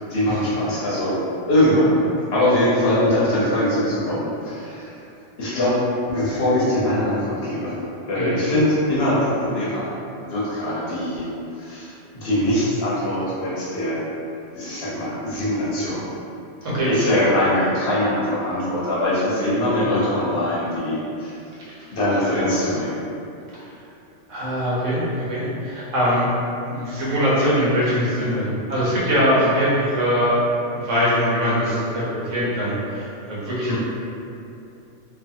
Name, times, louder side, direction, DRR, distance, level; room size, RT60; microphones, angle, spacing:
voice 1, 0.1-1.2 1.5-4.9 5.4-5.8 6.1-11.3 11.5-11.9 12.2-14.0 14.5-16.1 16.9-21.3 21.9-23.0 33.7-33.8, left 1 dB, 60° left, -8 dB, 0.9 m, -22 dB
voice 2, 24.3-26.3 26.7-30.4 30.7-33.8, equal, 85° right, -8 dB, 1.2 m, -22 dB
2.6 x 2.5 x 2.6 m, 2.7 s
omnidirectional pair, 1.2 m